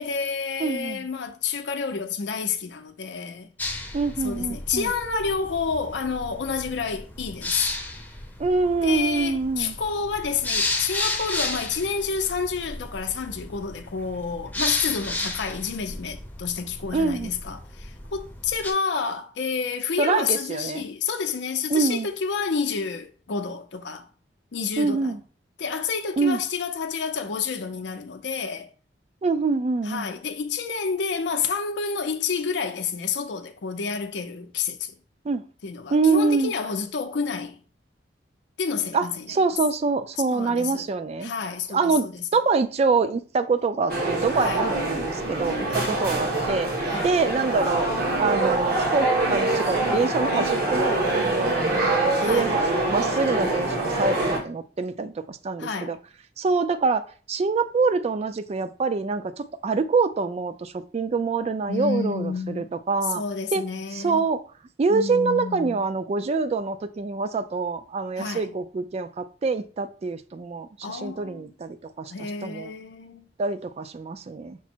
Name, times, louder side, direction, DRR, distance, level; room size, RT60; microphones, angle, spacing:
voice 1, 0.0-3.5 4.2-7.7 8.8-24.1 24.5-25.2 25.6-28.7 29.8-34.9 35.6-37.6 38.6-39.4 40.3-40.9 41.2-42.2 44.4-44.6 45.7-46.0 46.8-47.1 52.2-52.5 55.6-56.0 61.7-62.7 63.1-64.2 64.9-65.8 68.2-68.5 70.8-71.5 72.1-73.3, left 5 dB, 75° left, 0.5 m, -29 dB
voice 2, 0.6-1.0 3.9-4.9 8.4-9.7 16.9-17.3 20.0-20.8 21.7-22.1 24.8-25.2 26.2-26.4 29.2-30.1 35.2-35.4 35.9-36.5 38.9-41.3 41.7-42.1 42.3-46.7 47.0-47.9 48.2-56.0 56.4-57.0 57.3-63.2 63.5-63.6 63.9-64.4 64.8-72.1 72.4-72.7 73.4-74.6, right 4 dB, 35° right, 0.3 m, -25 dB
sound 1, 3.6-18.7, left 2 dB, 10° left, 0.6 m, -33 dB
sound 2, 43.9-54.4, right 2 dB, 60° right, 1.2 m, -24 dB
5.9 x 2.1 x 4.4 m
head